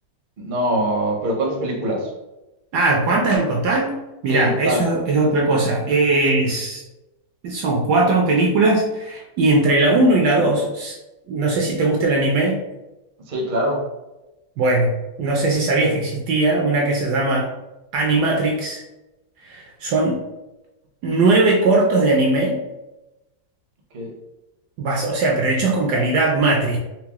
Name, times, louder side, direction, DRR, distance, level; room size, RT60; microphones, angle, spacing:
voice 1, 0.4-2.1 4.3-4.8 13.3-13.8 23.9-24.1, right 1 dB, 45° right, -2 dB, 0.6 m, -23 dB
voice 2, 2.7-4.0 4.2-6.8 7.4-11.0 11.3-12.6 14.6-17.5 17.9-18.8 19.4-20.2 21.0-22.6 24.8-26.8, right 2 dB, 70° right, -1 dB, 1.0 m, -19 dB
4.5 x 2.0 x 2.9 m, 0.98 s
omnidirectional pair, 2.1 m